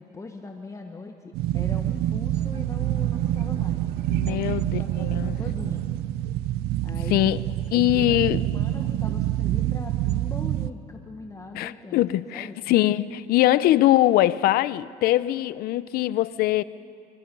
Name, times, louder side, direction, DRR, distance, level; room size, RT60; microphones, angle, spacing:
voice 1, 0.0-3.8 4.1-5.9 6.8-7.2 7.7-8.2 8.5-12.0 12.3-12.6, left 3 dB, 20° left, 1.4 m, -40 dB
sound 1, 1.3-10.7, right 14 dB, 75° right, 0.7 m, -27 dB
Bowed string instrument, 2.3-7.4, right 5 dB, 40° right, 1.8 m, -49 dB
voice 2, 4.2-5.4 7.1-7.4 7.7-8.4 11.5-16.6, left 15 dB, 70° left, 0.7 m, -22 dB
25.0 x 23.0 x 5.5 m
cardioid pair, 105°, 17 cm